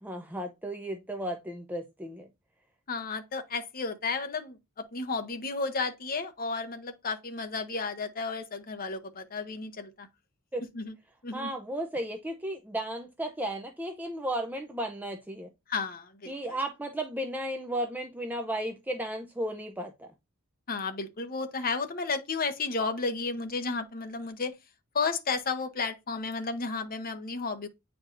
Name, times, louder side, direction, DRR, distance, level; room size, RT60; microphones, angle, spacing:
voice 1, 0.0-2.3 10.5-10.6 11.3-15.5 16.3-20.1, right 1 dB, 10° right, 0.6 m, -34 dB
voice 2, 2.9-10.1 10.7-11.0 11.2-11.5 15.7-16.3 20.7-24.5 24.9-27.7, left 4 dB, 45° left, 0.9 m, -33 dB
8.7 x 4.6 x 2.6 m
head